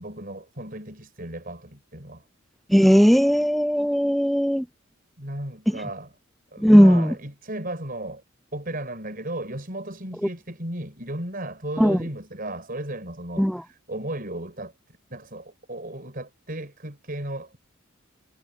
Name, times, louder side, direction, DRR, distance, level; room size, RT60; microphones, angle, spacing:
voice 1, 0.0-2.2 5.2-6.1 6.5-8.2 8.5-14.7 15.1-17.6, right 1 dB, 45° right, 5.7 m, -35 dB
voice 2, 2.7-4.6 6.6-7.1 11.8-12.0 13.4-13.6, equal, ahead, 0.5 m, -17 dB
head